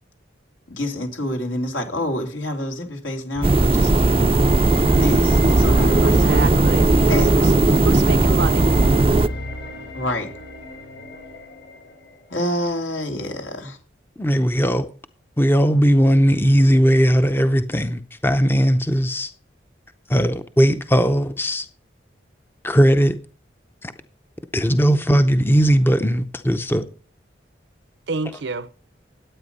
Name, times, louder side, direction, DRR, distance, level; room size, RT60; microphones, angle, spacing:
voice 1, 0.7-4.6 4.9-6.5 7.0-7.4 9.9-10.3 12.3-13.8, left 1 dB, 80° left, 3.2 m, -27 dB
sound 1, 3.4-12.4, left 1 dB, 65° left, 4.8 m, -33 dB
sound 2, 3.4-9.3, right 2 dB, 30° right, 0.5 m, -17 dB
voice 2, 6.2-6.9 7.2-7.5 7.8-8.7 28.1-28.7, right 3 dB, 70° right, 0.7 m, -27 dB
voice 3, 14.2-14.9 15.4-19.3 20.1-21.7 22.6-23.2 23.8-23.9 24.5-26.8, equal, 10° left, 0.6 m, -18 dB
12.5 x 8.7 x 5.4 m
head